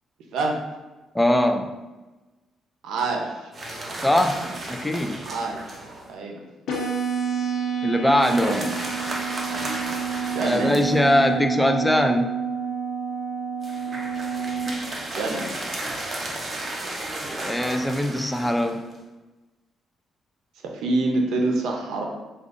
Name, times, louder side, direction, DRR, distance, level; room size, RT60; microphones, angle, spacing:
voice 1, 1.1-1.7 4.0-4.3 4.7-5.2 7.8-8.7 10.4-12.3 17.3-18.8, left 1 dB, 5° left, 5 dB, 0.3 m, -21 dB
voice 2, 2.8-3.5 5.2-5.6 6.1-6.4 8.4-8.7 10.3-10.7 15.0-15.5 20.6-22.0, right 3 dB, 80° right, 1 dB, 0.6 m, -26 dB
sound 1, 3.5-6.1 8.2-11.4 13.6-19.0, right 1 dB, 40° right, 0.7 m, -34 dB
sound 2, 6.7-14.7, right 6 dB, 75° left, 0.9 m, -28 dB
4.9 x 2.4 x 2.5 m, 1.1 s
cardioid pair, 90°, 0 cm